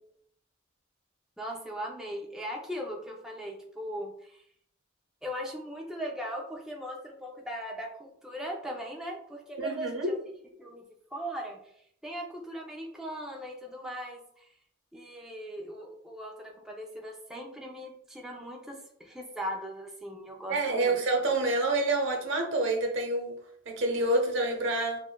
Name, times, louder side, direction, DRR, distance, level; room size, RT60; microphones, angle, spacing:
voice 1, 1.4-4.4 5.2-10.2 10.6-10.8 11.1-11.6 12.0-14.5 14.9-21.0, equal, 5° right, -1 dB, 0.5 m, -39 dB
voice 2, 9.6-10.1 20.5-23.3 23.7-25.0, right 2 dB, 70° right, 2 dB, 0.9 m, -27 dB
6.2 x 2.3 x 2.2 m, 0.66 s
head